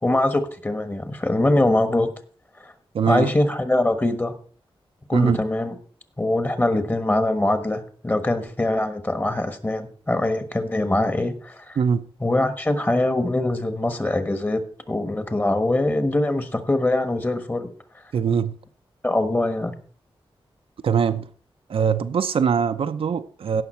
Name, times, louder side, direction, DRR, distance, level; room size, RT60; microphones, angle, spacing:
voice 1, 0.0-2.1 3.0-4.3 5.1-5.8 6.2-11.8 12.2-14.6 14.9-17.7 19.0-19.7, left 1 dB, 20° left, 1.4 m, -23 dB
voice 2, 2.9-3.3 5.1-5.4 11.8-12.0 18.1-18.5 20.8-21.3 21.7-23.6, right 6 dB, 75° right, 0.7 m, -22 dB
16.5 x 5.9 x 4.4 m
wide cardioid pair, 115°, 10 cm